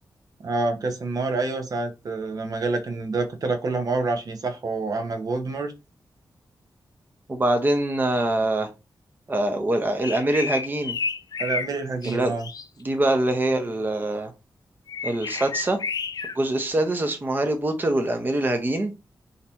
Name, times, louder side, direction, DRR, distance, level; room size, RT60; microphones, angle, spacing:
voice 1, 0.4-5.7 11.4-12.5, right 3 dB, 55° right, 0.8 m, -27 dB
voice 2, 7.3-8.7 9.3-11.0 12.0-12.3 12.8-14.3 15.0-15.8 16.4-18.9, right 1 dB, 25° right, 0.7 m, -24 dB
sound 1, 10.0-11.7 12.0-12.7 14.9-16.4, left 5 dB, 55° left, 0.5 m, -31 dB
3.9 x 2.8 x 4.3 m
wide cardioid pair, 140°, 8 cm